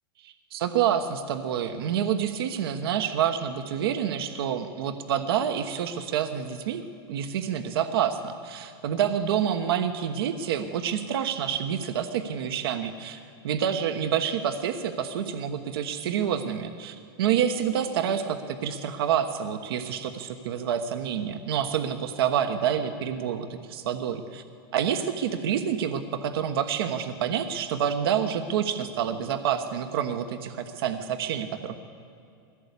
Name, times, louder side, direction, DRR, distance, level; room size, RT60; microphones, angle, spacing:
voice 1, 0.2-6.8 7.1-24.4 24.7-31.8, right 9 dB, 75° right, 7 dB, 1.2 m, -28 dB
20.5 x 16.0 x 8.4 m, 2.5 s
hypercardioid pair, 130°, 13 cm